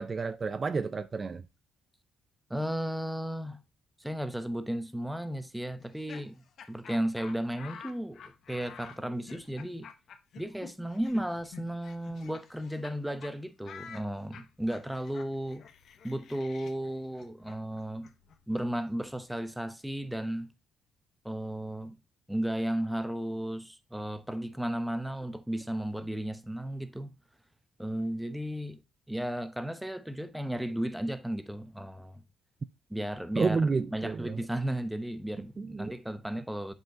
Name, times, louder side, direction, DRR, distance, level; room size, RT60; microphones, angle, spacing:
voice 1, 0.0-1.4 33.4-34.4 35.6-35.9, right 4 dB, 35° right, 0.5 m, -30 dB
voice 2, 2.5-3.6 4.0-6.4 6.7-8.2 8.5-9.9 10.4-15.7 16.0-18.1 18.5-20.5 21.2-22.0 22.3-27.1 27.8-28.8 29.1-32.2 32.9-36.7, right 1 dB, 5° right, 0.8 m, -34 dB
Laughter, 5.8-12.9 13.2-13.3 13.6-19.4, left 7 dB, 65° left, 0.9 m, -50 dB
7.4 x 5.4 x 2.7 m
cardioid pair, 90°, 0 cm